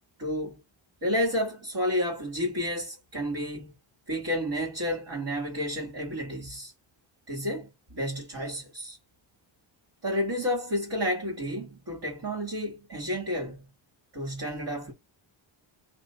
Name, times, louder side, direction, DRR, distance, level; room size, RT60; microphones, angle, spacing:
voice 1, 0.2-0.6 1.0-3.7 4.1-6.7 7.3-9.0 10.0-13.6 14.1-14.9, equal, 50° right, 2.3 m, -31 dB
3.9 x 2.9 x 4.4 m
wide cardioid pair, 135°, 48 cm